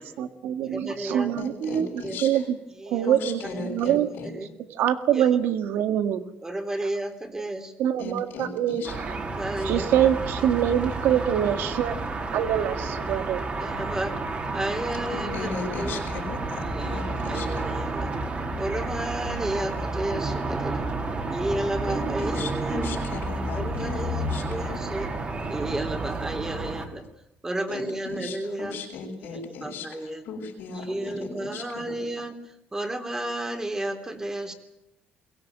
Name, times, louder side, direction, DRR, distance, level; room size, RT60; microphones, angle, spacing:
voice 1, 0.0-2.6 2.9-4.1 4.7-6.3 7.8-9.2 9.6-13.5, right 10 dB, 85° right, 9 dB, 1.8 m, -25 dB
voice 2, 0.6-1.3 1.6-2.2 2.8-3.1 3.4-4.0 4.3-4.5 5.1-5.2 6.4-7.7 9.3-10.1 10.4-10.5 13.6-14.2 14.5-16.1 16.6-18.1 18.6-20.9 21.3-23.0 23.5-25.1 25.5-27.1 27.4-28.8 29.2-30.2 30.7-34.5, right 1 dB, 15° right, 6 dB, 3.4 m, -33 dB
voice 3, 1.4-2.3 3.0-4.3 8.0-8.9 9.6-9.7 15.1-17.7 21.9-24.8 27.7-32.0, left 4 dB, 75° left, -5 dB, 5.6 m, -37 dB
sound 1, 8.8-26.9, right 2 dB, 35° right, 4.2 m, -31 dB
22.5 x 17.5 x 9.1 m, 0.89 s
cardioid pair, 105°, 4 cm